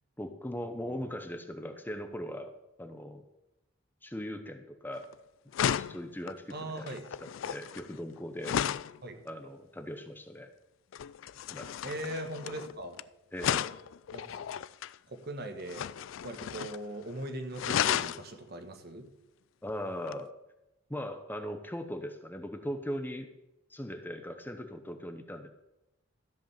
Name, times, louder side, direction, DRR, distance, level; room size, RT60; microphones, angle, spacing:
voice 1, 0.2-2.5 2.8-3.2 4.0-5.1 5.8-6.9 7.2-8.6 9.2-10.5 11.5-11.7 13.3-13.7 19.6-20.3 20.9-23.3 23.7-25.5, equal, 10° left, 7 dB, 0.7 m, -39 dB
voice 2, 0.7-1.2 6.5-7.1 9.0-9.2 11.8-13.0 14.1-14.4 15.1-15.9 16.2-19.1, right 1 dB, 55° right, 6 dB, 1.5 m, -40 dB
sound 1, 5.0-5.1 5.5-9.0 10.9-13.0 13.4-14.9 15.7-16.9 17.1-17.2 17.5-18.2 20.1-20.2, left 9 dB, 90° left, 0.3 m, -33 dB
13.5 x 5.2 x 7.1 m, 0.93 s
head